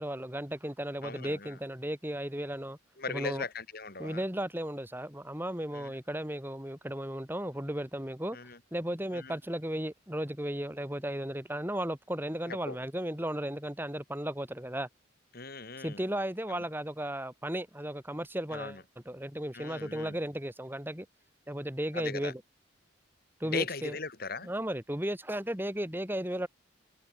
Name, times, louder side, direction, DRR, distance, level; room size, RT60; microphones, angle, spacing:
voice 1, 0.0-2.8 3.1-3.4 4.0-8.4 8.7-14.9 15.8-21.1 21.5-22.4 23.4-24.0 24.4-26.5, right 1 dB, 10° right, 2.8 m, -35 dB
voice 2, 1.0-1.5 3.0-4.2 5.7-5.9 8.3-8.6 9.1-9.4 12.5-12.8 15.3-16.0 16.5-16.6 18.5-18.8 19.5-20.2 21.9-22.3 23.4-24.5, left 4 dB, 45° left, 3.3 m, -39 dB
head